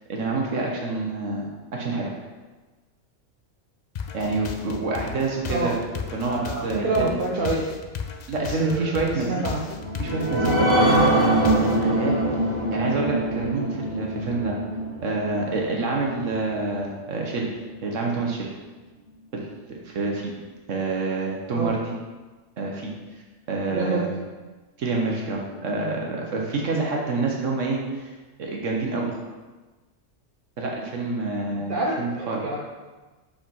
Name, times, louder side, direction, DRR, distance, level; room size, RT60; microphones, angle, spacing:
voice 1, 0.0-2.1 4.1-5.7 6.1-7.1 8.3-9.6 10.0-12.2 12.7-14.6 15.0-17.5 17.8-18.5 19.3-20.3 20.7-21.9 22.6-22.9 23.5-24.1 24.8-28.1 28.4-29.1 30.6-32.4, right 3 dB, 70° right, -1 dB, 1.3 m, -27 dB
sound 1, 4.0-11.9, left 6 dB, 65° left, 0.4 m, -35 dB
voice 2, 6.2-7.6 8.4-9.6 21.5-21.7 23.7-24.0 31.7-32.6, right 2 dB, 45° right, -3 dB, 0.9 m, -27 dB
sound 2, 9.7-16.8 17.2-17.3 17.7-17.8, right 1 dB, 20° left, 2.1 m, -24 dB
5.2 x 5.2 x 5.3 m, 1.2 s
omnidirectional pair, 1.3 m